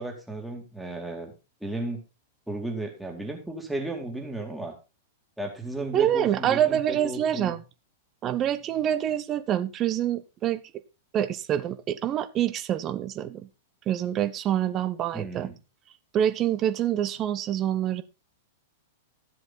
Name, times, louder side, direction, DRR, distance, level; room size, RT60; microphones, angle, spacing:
voice 1, 0.0-1.3 1.6-2.0 2.5-4.7 5.4-7.6 15.1-15.5, right 2 dB, 5° right, 2.7 m, -34 dB
voice 2, 5.9-7.6 8.2-10.6 11.1-13.5 13.9-15.5 16.1-18.0, right 10 dB, 30° right, 0.9 m, -26 dB
13.0 x 7.9 x 4.0 m
figure-of-eight pair, 100°, 0 cm